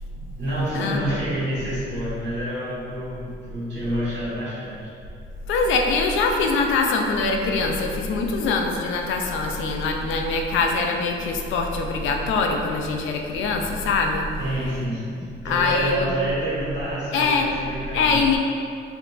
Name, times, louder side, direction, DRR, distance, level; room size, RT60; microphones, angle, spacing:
voice 1, 0.1-4.9 14.4-18.2, right 1 dB, 65° right, -9 dB, 1.3 m, -28 dB
voice 2, 0.7-1.2 5.5-14.3 15.4-16.1 17.1-17.5 17.9-18.4, left 4 dB, 80° left, 3 dB, 0.4 m, -23 dB
3.5 x 2.9 x 2.4 m, 2.4 s
cardioid pair, 90°, 20 cm